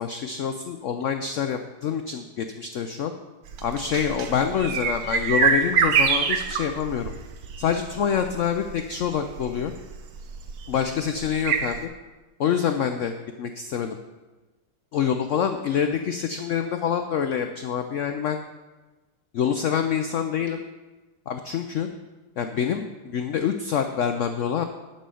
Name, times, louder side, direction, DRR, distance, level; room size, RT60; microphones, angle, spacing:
voice 1, 0.0-3.1 3.6-7.1 7.6-9.7 10.7-11.9 12.4-14.0 14.9-18.4 19.3-20.6 21.3-21.9 22.4-24.6, left 8 dB, 80° left, 7 dB, 0.6 m, -26 dB
sound 1, 3.5-11.8, right 6 dB, 65° right, 1.2 m, -26 dB
10.5 x 5.6 x 6.9 m, 1.2 s
omnidirectional pair, 1.9 m